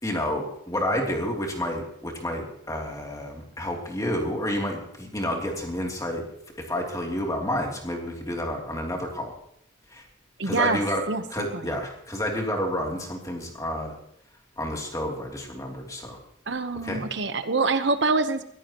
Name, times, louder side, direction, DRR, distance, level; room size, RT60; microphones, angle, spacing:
voice 1, 0.0-6.2 6.5-9.3 9.9-10.0 10.4-13.9 14.6-16.2 16.8-17.0, left 1 dB, 15° left, 1 dB, 3.0 m, -30 dB
voice 2, 10.4-10.8 11.1-11.2 11.5-11.8 16.5-18.4, right 3 dB, 60° right, 10 dB, 1.0 m, -25 dB
21.5 x 15.5 x 3.0 m, 0.73 s
head